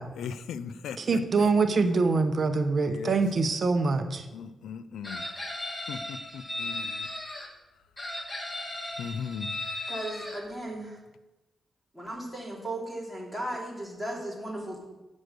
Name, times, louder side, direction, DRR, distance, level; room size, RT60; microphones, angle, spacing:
voice 1, 0.2-1.5 2.9-3.2 4.3-5.3 5.9-7.1 9.0-9.5, left 7 dB, 90° left, 14 dB, 0.4 m, -38 dB
voice 2, 1.0-4.2, right 4 dB, 50° right, 8 dB, 0.9 m, -24 dB
Chicken rooster, 5.0-7.5 8.0-10.4, left 2 dB, 25° left, 1.6 m, -36 dB
voice 3, 9.9-11.0 11.9-14.8, right 1 dB, ahead, -4 dB, 3.1 m, -36 dB
7.6 x 6.3 x 6.6 m, 1.1 s
cardioid pair, 90°, 0 cm